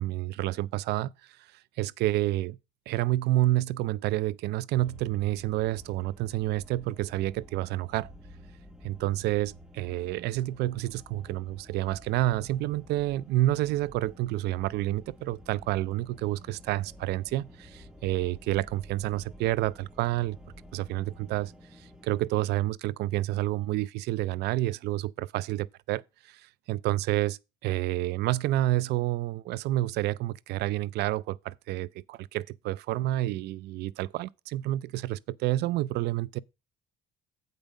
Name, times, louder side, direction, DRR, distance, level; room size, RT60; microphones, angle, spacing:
voice 1, 0.0-2.6 2.9-8.1 8.8-20.4 20.7-36.4, right 16 dB, 80° right, 0.4 m, -29 dB
sound 1, 4.7-22.3, equal, 5° right, 1.2 m, -51 dB
8.1 x 5.3 x 5.2 m
cardioid pair, 110°, 17 cm